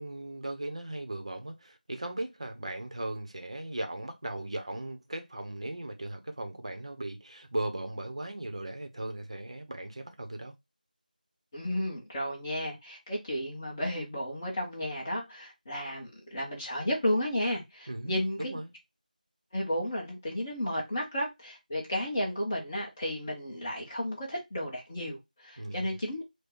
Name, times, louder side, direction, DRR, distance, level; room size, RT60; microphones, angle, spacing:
voice 1, 0.0-10.5 17.9-18.7 25.6-25.8, right 1 dB, 45° right, 0.8 m, -37 dB
voice 2, 11.5-18.6 19.5-26.2, left 1 dB, 20° left, 1.0 m, -33 dB
4.8 x 2.2 x 4.6 m
figure-of-eight pair, 170°, 5 cm